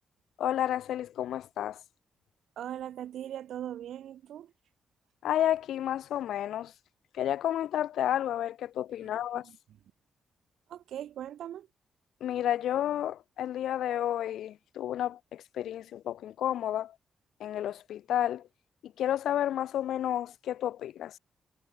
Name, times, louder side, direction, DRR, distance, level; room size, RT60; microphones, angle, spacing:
voice 1, 0.4-1.8 5.2-6.7 7.1-9.5 12.2-16.9 17.4-18.5 18.8-21.2, left 11 dB, 85° left, 0.7 m, -31 dB
voice 2, 2.6-4.5 9.0-9.1 9.4-9.6 10.7-11.7, right 11 dB, 80° right, 3.0 m, -40 dB
cardioid pair, 120°, 0 cm